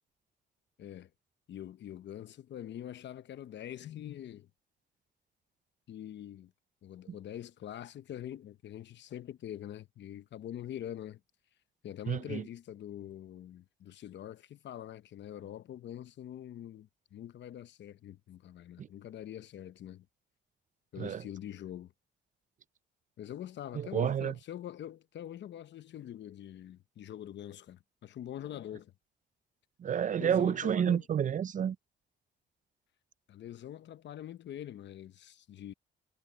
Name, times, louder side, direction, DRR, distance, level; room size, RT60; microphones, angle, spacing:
voice 1, 0.8-1.1 1.5-4.5 5.9-6.5 6.8-11.2 11.8-20.1 20.9-21.9 23.2-28.9 30.1-31.0 33.3-35.7, left 11 dB, 65° left, 0.9 m, -44 dB
voice 2, 12.1-12.4 18.8-18.9 21.0-21.2 23.7-24.3 29.8-31.8, right 8 dB, 40° right, 0.4 m, -30 dB
cardioid pair, 90°, 20 cm